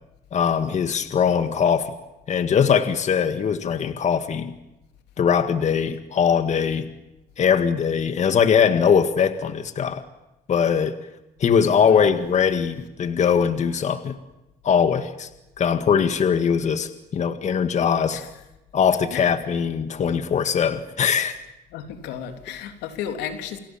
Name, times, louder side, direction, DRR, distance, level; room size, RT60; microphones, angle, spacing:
voice 1, 0.3-2.0 2.3-4.5 5.2-6.9 7.4-10.0 10.5-11.0 11.4-14.2 14.6-15.3 15.6-18.2 18.7-21.4, left 7 dB, 45° left, 1.9 m, -21 dB
voice 2, 11.8-12.2 18.1-18.3 19.1-19.3 21.7-23.6, left 9 dB, 90° left, 3.5 m, -33 dB
29.0 x 27.5 x 7.3 m
cardioid pair, 110°, 17 cm